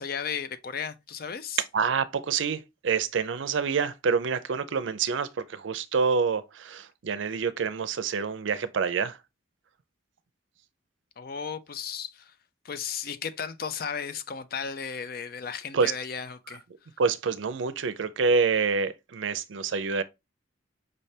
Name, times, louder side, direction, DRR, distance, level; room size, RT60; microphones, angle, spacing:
voice 1, 0.0-1.6 11.2-12.3 12.6-16.6, left 6 dB, 50° left, 0.5 m, -35 dB
voice 2, 1.7-9.2 15.7-15.9 17.0-20.0, right 5 dB, 75° right, 0.5 m, -27 dB
5.3 x 3.3 x 2.7 m
head